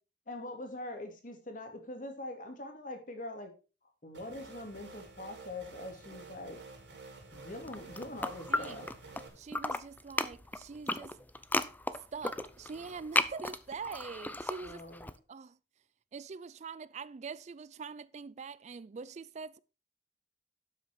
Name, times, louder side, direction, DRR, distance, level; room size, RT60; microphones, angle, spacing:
voice 1, 0.3-3.5 4.0-6.6 7.3-8.9 14.6-15.1, left 1 dB, 50° left, 2.7 m, -43 dB
sound 1, 4.1-9.3, right 3 dB, 85° right, 4.4 m, -50 dB
sound 2, 7.6-9.2 9.5-15.1, left 2 dB, 10° left, 0.6 m, -34 dB
voice 2, 8.5-8.8 9.4-11.2 11.9-14.8 15.3-15.6 16.1-19.6, right 5 dB, 40° right, 0.4 m, -44 dB
12.0 x 6.4 x 4.7 m
head